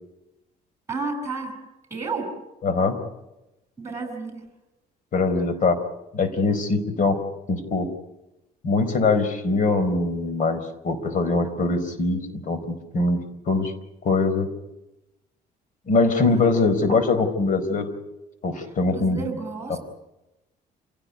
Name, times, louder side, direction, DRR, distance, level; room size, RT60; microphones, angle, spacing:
voice 1, 0.9-1.6 1.9-2.3 3.8-4.4 16.3-16.5 18.9-19.8, right 4 dB, 15° right, 7 dB, 7.6 m, -31 dB
voice 2, 2.6-3.0 5.1-5.8 6.1-7.2 7.5-7.9 8.6-13.7 14.0-14.5 15.9-17.9 18.4-19.3 19.7-19.8, left 3 dB, 50° left, 11 dB, 4.4 m, -22 dB
28.0 x 17.0 x 9.5 m, 0.97 s
cardioid pair, 110°, 17 cm